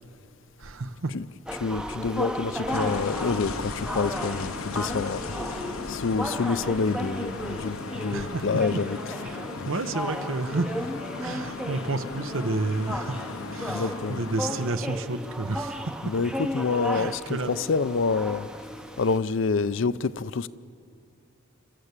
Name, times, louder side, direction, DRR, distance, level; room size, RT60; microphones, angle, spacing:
voice 1, 0.6-1.1 1.8-2.1 8.1-8.8 9.2-10.9 11.2-13.2 13.5-16.1 16.9-17.5, right 2 dB, 70° right, 0.9 m, -31 dB
voice 2, 1.5-5.6 5.9-9.1 9.6-9.7 13.7-14.2 16.0-18.5 19.0-20.5, left 4 dB, 60° left, 0.5 m, -27 dB
sound 1, 1.5-19.2, equal, 5° right, 0.6 m, -35 dB
sound 2, 2.7-14.7, left 4 dB, 85° left, 0.9 m, -37 dB
29.5 x 13.0 x 8.2 m
head